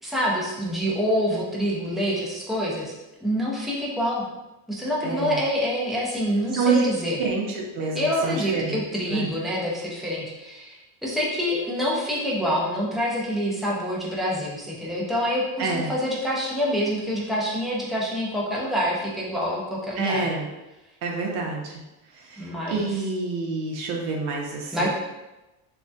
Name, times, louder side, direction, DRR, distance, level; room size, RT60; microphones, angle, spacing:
voice 1, 0.0-2.9 3.2-4.2 4.7-7.2 7.9-20.2 22.4-23.0 24.7-24.9, equal, ahead, -5 dB, 0.4 m, -26 dB
voice 2, 5.0-5.4 6.5-6.8 7.2-8.8 9.1-9.3 15.6-15.9 20.0-20.5 21.0-21.8 22.1-24.9, right 4 dB, 85° right, -1 dB, 0.6 m, -28 dB
3.2 x 2.2 x 2.6 m, 1.0 s
cardioid pair, 140°, 42 cm